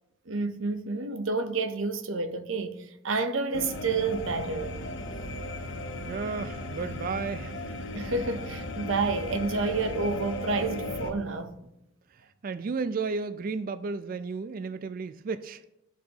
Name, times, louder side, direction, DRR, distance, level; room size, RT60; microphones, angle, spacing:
voice 1, 0.3-4.8 7.9-11.5, right 3 dB, 80° right, 0.7 m, -29 dB
sound 1, 3.5-11.1, left 2 dB, 75° left, 1.0 m, -36 dB
voice 2, 6.1-7.6 12.4-15.6, right 4 dB, 45° right, 0.3 m, -33 dB
14.5 x 5.5 x 2.9 m
head